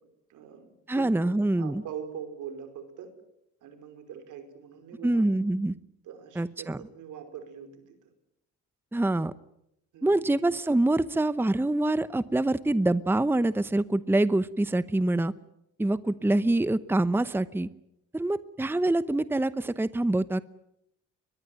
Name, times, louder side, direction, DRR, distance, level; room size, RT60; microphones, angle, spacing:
voice 1, 0.3-3.1 3.6-5.4 6.0-8.0 9.9-10.1 16.2-16.3 18.7-18.8, right 8 dB, 80° right, 7 dB, 5.1 m, -43 dB
voice 2, 0.9-1.8 5.0-5.7 6.4-6.8 8.9-9.3 10.0-15.3 15.8-17.7 18.1-20.4, right 2 dB, 5° right, 15 dB, 0.9 m, -25 dB
22.0 x 22.0 x 9.2 m, 0.81 s
cardioid pair, 90°, 30 cm